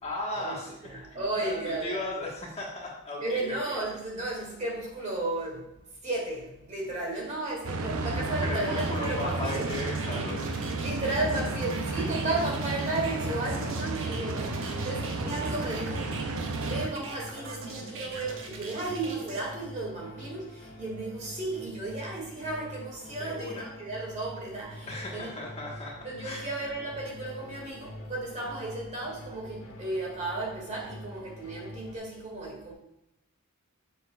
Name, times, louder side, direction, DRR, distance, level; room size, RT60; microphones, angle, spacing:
voice 1, 0.0-0.7 1.1-3.8 8.4-10.8 23.1-23.7 24.9-26.5, left 2 dB, 30° left, -3 dB, 1.4 m, -37 dB
voice 2, 0.8-2.1 3.2-5.7 6.0-9.7 10.8-16.1 16.6-25.5 26.0-32.7, right 2 dB, 35° right, -2 dB, 2.1 m, -34 dB
sound 1, 7.6-16.9, right 3 dB, 85° right, 0.7 m, -32 dB
sound 2, 8.8-19.4, right 3 dB, 65° right, 1.2 m, -42 dB
sound 3, 12.8-32.0, left 1 dB, 65° left, 1.8 m, -45 dB
7.7 x 6.9 x 2.3 m, 0.87 s
head